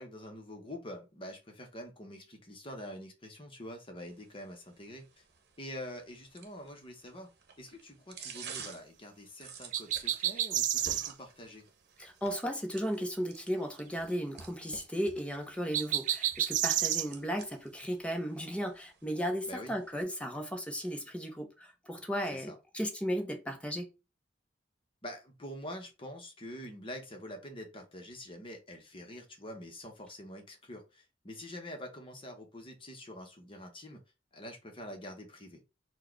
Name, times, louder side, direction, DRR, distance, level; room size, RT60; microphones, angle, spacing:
voice 1, 0.0-5.2 5.6-7.3 7.6-11.7 19.5-19.7 22.3-22.6 25.0-34.0 34.3-35.6, left 1 dB, 30° left, 1.0 m, -46 dB
sound 1, 4.1-20.0, right 5 dB, 60° right, 0.9 m, -52 dB
sound 2, 9.7-11.1 15.7-17.1, right 11 dB, 45° right, 0.3 m, -30 dB
voice 2, 12.0-23.9, equal, 5° left, 0.9 m, -35 dB
4.5 x 2.3 x 4.5 m
head